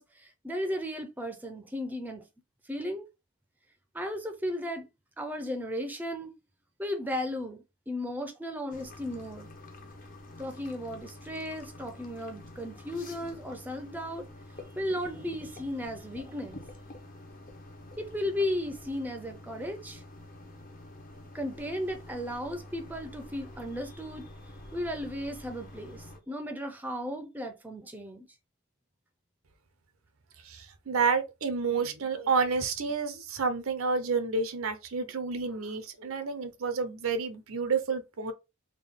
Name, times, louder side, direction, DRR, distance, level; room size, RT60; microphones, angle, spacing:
voice 1, 0.0-2.3 2.7-3.1 3.9-4.9 5.2-6.3 6.8-9.5 10.4-14.3 14.8-16.6 18.0-20.0 21.3-24.3 24.7-28.3, left 1 dB, 10° right, 0.5 m, -35 dB
sound 1, 8.7-26.2, left 1 dB, 40° left, 0.7 m, -48 dB
voice 2, 30.4-38.3, right 5 dB, 80° right, 0.7 m, -30 dB
3.7 x 2.2 x 3.5 m
head